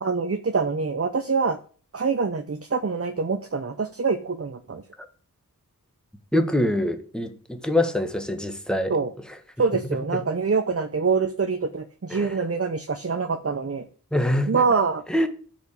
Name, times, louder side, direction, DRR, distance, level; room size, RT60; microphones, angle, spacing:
voice 1, 0.0-1.6 1.9-4.8 8.9-9.1 9.6-13.8 14.5-15.0, right 4 dB, 40° right, 0.8 m, -25 dB
voice 2, 6.3-9.4 9.8-10.2 12.1-12.4 14.1-14.6 15.1-15.3, left 1 dB, ahead, 1.5 m, -25 dB
12.0 x 5.3 x 8.3 m
wide cardioid pair, 50°, 36 cm